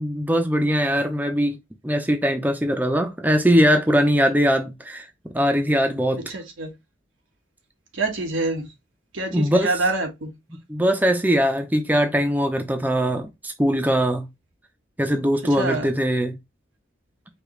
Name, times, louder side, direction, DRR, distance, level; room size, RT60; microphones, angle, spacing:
voice 1, 0.0-1.6 1.8-6.2 9.3-9.8 10.7-14.3 15.0-16.3, equal, 10° right, 0.6 m, -21 dB
voice 2, 6.2-6.7 7.9-8.7 9.1-10.3 15.6-15.9, right 2 dB, 90° right, 1.4 m, -26 dB
4.9 x 2.9 x 3.1 m
head